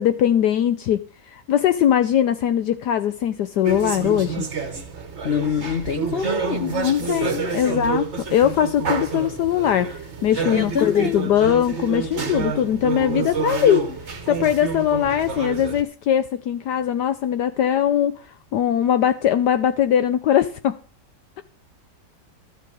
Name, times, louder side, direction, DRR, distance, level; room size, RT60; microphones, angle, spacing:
voice 1, 0.0-4.5 6.6-8.1 8.3-13.9 14.3-20.8, left 10 dB, 75° left, 1.3 m, -21 dB
sound 1, 3.6-15.8, right 5 dB, 40° right, 1.8 m, -28 dB
voice 2, 5.2-7.8 10.5-11.2, left 7 dB, 50° left, 0.7 m, -27 dB
13.5 x 5.5 x 8.5 m
omnidirectional pair, 1.9 m